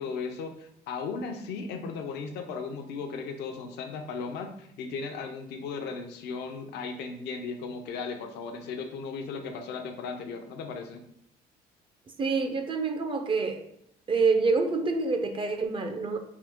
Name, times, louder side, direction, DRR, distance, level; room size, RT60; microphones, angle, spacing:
voice 1, 0.0-11.0, left 5 dB, 80° left, 0.6 m, -36 dB
voice 2, 12.2-13.6 14.1-16.2, right 4 dB, 30° right, 0.4 m, -26 dB
3.7 x 2.8 x 3.5 m
cardioid pair, 110°, 17 cm